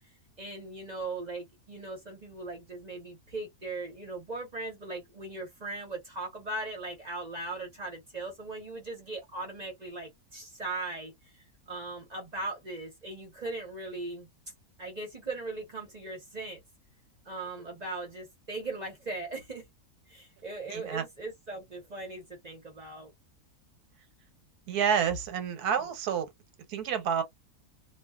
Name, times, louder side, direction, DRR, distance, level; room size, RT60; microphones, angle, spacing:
voice 1, 0.4-14.3 14.8-16.6 17.2-19.6 20.1-23.1, right 2 dB, 35° right, 0.8 m, -39 dB
voice 2, 20.7-21.0 24.7-26.3 26.7-27.2, right 7 dB, 85° right, 1.3 m, -29 dB
2.4 x 2.2 x 2.3 m
omnidirectional pair, 1.6 m